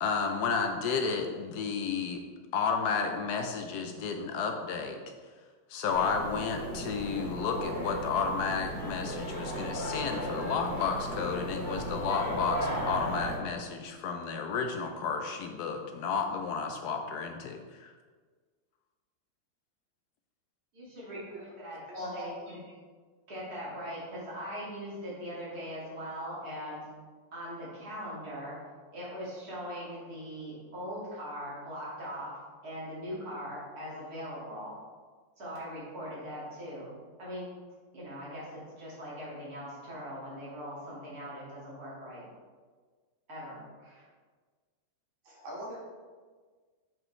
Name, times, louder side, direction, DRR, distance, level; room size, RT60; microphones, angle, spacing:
voice 1, 0.0-2.2 2.5-5.0 5.7-17.9, left 5 dB, 75° left, 5 dB, 0.9 m, -32 dB
sound 1, 5.9-13.4, equal, 25° left, 1.6 m, -35 dB
voice 2, 20.7-22.6 23.3-26.9 27.3-28.6 28.9-32.3 32.6-34.7 35.4-36.9 37.2-37.5 37.9-42.3 43.3-44.0, equal, 50° right, -7 dB, 2.6 m, -40 dB
voice 3, 21.9-22.3 45.2-45.8, equal, 80° right, -5 dB, 2.3 m, -41 dB
7.4 x 5.0 x 3.1 m, 1.5 s
omnidirectional pair, 2.2 m